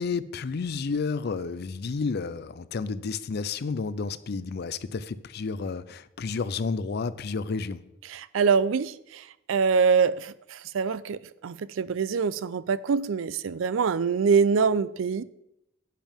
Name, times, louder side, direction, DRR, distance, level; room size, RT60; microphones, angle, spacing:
voice 1, 0.0-7.8, left 4 dB, 55° left, 0.4 m, -31 dB
voice 2, 8.1-8.9 9.5-10.3 10.7-11.2 11.4-15.2, right 5 dB, 85° right, 0.4 m, -24 dB
10.0 x 9.1 x 3.6 m
head